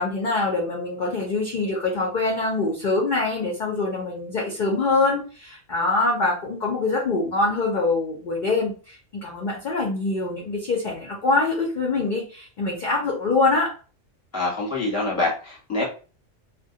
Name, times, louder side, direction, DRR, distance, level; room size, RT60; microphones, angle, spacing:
voice 1, 0.0-13.7, left 3 dB, 55° left, -2 dB, 0.6 m, -24 dB
voice 2, 14.3-15.8, left 2 dB, 15° left, -4 dB, 0.8 m, -25 dB
2.2 x 2.1 x 2.7 m, 0.37 s
omnidirectional pair, 1.3 m